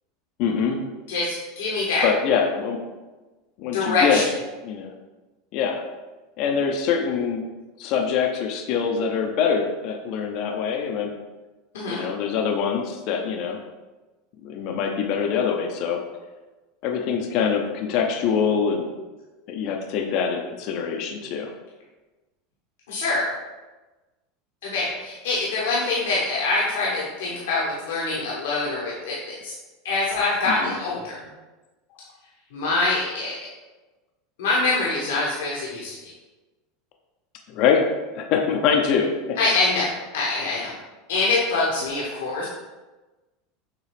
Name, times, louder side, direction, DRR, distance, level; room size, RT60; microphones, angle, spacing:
voice 1, 0.4-0.8 2.0-2.8 3.6-4.3 4.6-4.9 5.5-5.8 6.4-7.4 7.8-11.1 11.9-13.6 14.4-16.0 16.8-18.9 19.5-21.5 30.6-30.7 37.5-37.8 38.1-39.4, left 6 dB, 55° left, 3 dB, 0.6 m, -24 dB
voice 2, 1.1-2.0 3.6-4.3 11.7-12.1 22.9-23.2 24.6-29.5 29.8-31.1 32.5-33.4 34.4-35.9 39.4-40.7 41.1-42.5, left 3 dB, 85° left, -5 dB, 1.0 m, -24 dB
6.5 x 2.3 x 3.3 m, 1.2 s
supercardioid pair, 115°, 0 cm